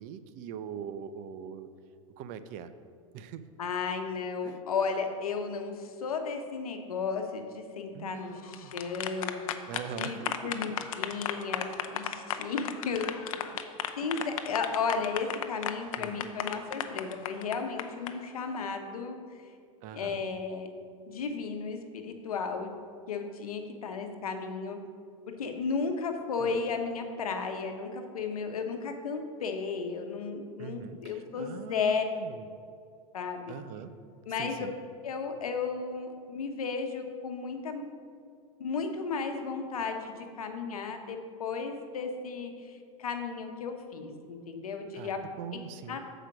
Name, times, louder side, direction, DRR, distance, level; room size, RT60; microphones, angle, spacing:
voice 1, 0.0-1.7 2.2-2.7 3.1-3.4 4.4-4.6 7.9-8.7 9.7-10.5 14.2-14.4 16.0-16.2 19.8-20.2 26.4-26.5 30.6-32.4 33.5-33.9 34.4-34.7 44.9-46.0, right 8 dB, 45° right, 11 dB, 0.5 m, -42 dB
voice 2, 3.6-9.6 10.0-13.2 13.6-13.7 14.0-19.4 19.9-20.7 21.1-22.7 23.1-24.8 25.3-32.1 33.1-33.5 34.3-34.7 35.0-37.8 38.6-45.2 45.9-46.0, left 5 dB, 85° left, 5 dB, 1.0 m, -34 dB
sound 1, 8.3-18.1, left 11 dB, 70° left, 0.6 m, -35 dB
7.4 x 5.0 x 6.0 m, 2.3 s
hypercardioid pair, 110°, 18 cm